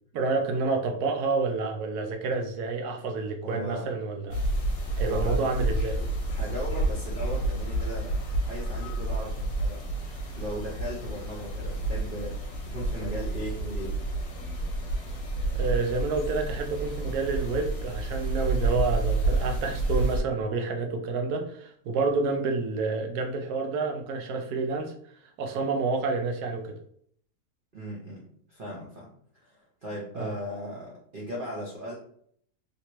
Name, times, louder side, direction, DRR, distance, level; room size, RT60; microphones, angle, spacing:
voice 1, 0.1-4.4 5.0-6.0 15.5-24.9 25.4-26.8 30.2-30.3, right 3 dB, 70° right, 4 dB, 1.1 m, -29 dB
voice 2, 3.4-3.9 5.0-5.4 6.3-9.9 10.3-14.0 27.7-28.2 28.5-29.1 29.3-31.9, equal, 50° right, -5 dB, 0.6 m, -37 dB
sound 1, 4.3-20.2, right 2 dB, 55° left, 1.1 m, -29 dB
3.3 x 2.9 x 2.9 m, 0.63 s
omnidirectional pair, 1.9 m